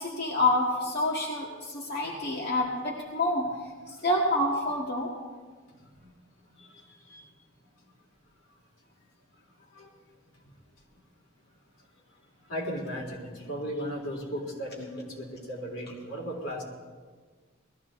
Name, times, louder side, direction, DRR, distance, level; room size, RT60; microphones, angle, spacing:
voice 1, 0.0-3.5 4.0-5.1, left 1 dB, 55° left, -3 dB, 1.9 m, -27 dB
voice 2, 6.6-7.2 9.8-9.9 12.5-16.6, equal, 85° left, -2 dB, 3.7 m, -36 dB
20.5 x 14.0 x 3.8 m, 1.5 s
head